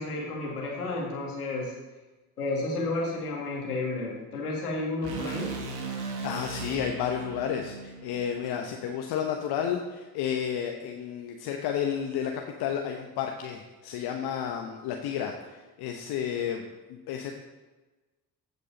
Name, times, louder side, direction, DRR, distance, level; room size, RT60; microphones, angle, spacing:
voice 1, 0.0-1.7 2.4-5.5, left 2 dB, 85° left, -2 dB, 2.1 m, -31 dB
sound 1, 5.0-9.2, right 4 dB, 55° right, 2.0 m, -38 dB
voice 2, 6.0-12.3 12.6-17.3, left 8 dB, 60° left, 3 dB, 1.0 m, -32 dB
14.5 x 5.3 x 5.2 m, 1.2 s
figure-of-eight pair, 45°, 44 cm